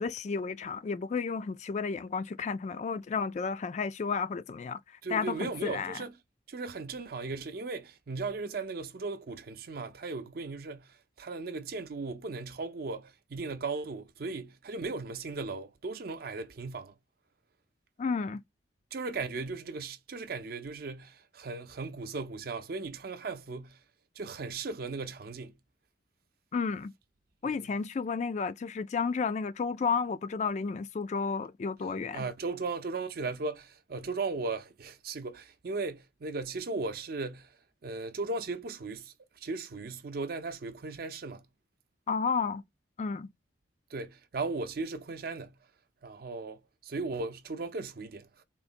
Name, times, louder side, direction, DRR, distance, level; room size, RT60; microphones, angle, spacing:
voice 1, 0.0-4.8 5.1-6.0 18.0-18.4 26.5-26.9 27.4-32.2 42.1-42.6 43.0-43.3, left 5 dB, 40° left, 0.3 m, -32 dB
voice 2, 5.0-6.1 6.5-17.0 18.9-23.8 24.2-25.6 27.4-27.7 32.1-37.5 37.8-41.5 43.9-45.6 46.0-48.4, right 3 dB, 55° right, 0.5 m, -37 dB
3.8 x 2.1 x 2.5 m
head